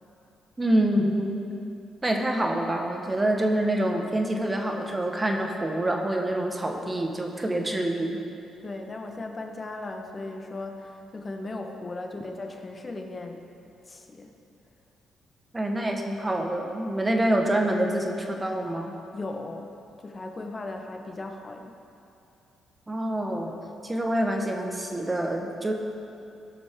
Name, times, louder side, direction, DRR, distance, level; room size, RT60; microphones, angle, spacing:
voice 1, 0.6-1.4 2.0-8.2 15.5-18.9 22.9-23.6 23.8-25.7, right 1 dB, 20° right, 2 dB, 1.3 m, -26 dB
voice 2, 8.6-13.4 13.9-14.3 19.1-19.7 20.0-21.7, left 2 dB, 30° left, 3 dB, 1.2 m, -37 dB
18.5 x 6.1 x 3.7 m, 2.8 s
cardioid pair, 90°, 0 cm